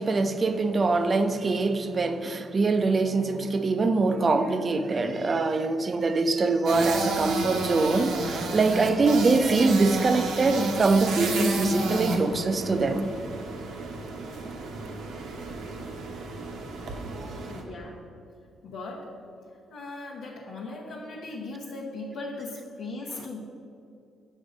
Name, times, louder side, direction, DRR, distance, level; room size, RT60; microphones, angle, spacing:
voice 1, 0.0-13.1 17.2-17.3, right 3 dB, 35° right, 8 dB, 0.5 m, -23 dB
sound 1, 6.7-17.6, right 3 dB, 80° right, 0.9 m, -32 dB
voice 2, 17.5-18.0 18.6-19.2 19.7-23.4, left 2 dB, 80° left, -4 dB, 0.9 m, -38 dB
6.4 x 5.4 x 5.1 m, 2.7 s
cardioid pair, 90°, 0 cm